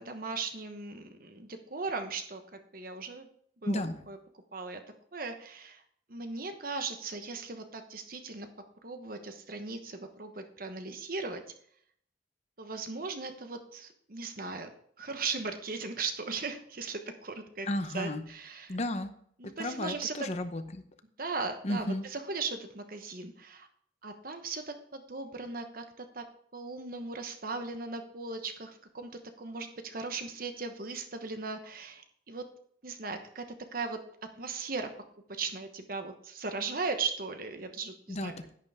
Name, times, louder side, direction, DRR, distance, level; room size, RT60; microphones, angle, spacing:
voice 1, 0.0-3.3 3.6-4.2 4.5-4.8 5.1-5.8 6.1-8.5 8.8-11.4 12.6-14.7 15.0-17.7 17.9-18.8 19.4-20.3 21.2-23.7 24.0-26.2 26.5-29.1 29.4-32.4 32.8-33.4 33.7-34.0 34.4-34.9 35.3-38.3, right 4 dB, 50° right, 7 dB, 1.1 m, -38 dB
voice 2, 3.6-4.0 17.7-18.2 18.7-19.1 19.6-20.8 21.6-22.0 38.1-38.5, left 1 dB, 35° left, 9 dB, 0.8 m, -33 dB
10.5 x 9.7 x 3.6 m, 0.63 s
head